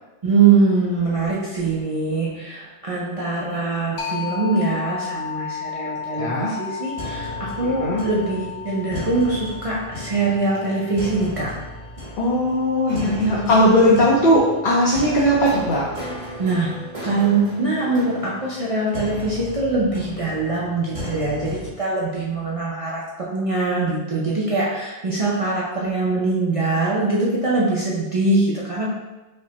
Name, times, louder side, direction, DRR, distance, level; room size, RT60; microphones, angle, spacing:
voice 1, 0.2-11.5 13.0-13.4 13.9-14.0 16.4-28.9, right 3 dB, 55° right, -6 dB, 0.3 m, -23 dB
sound 1, 4.0-13.4, left 6 dB, 75° left, 1.0 m, -34 dB
voice 2, 6.1-6.5 7.6-8.0 12.2-15.9, equal, 50° left, -5 dB, 0.7 m, -18 dB
sound 2, 7.0-21.7, left 1 dB, 30° right, 1.1 m, -35 dB
5.0 x 2.1 x 2.8 m, 1.1 s
omnidirectional pair, 1.3 m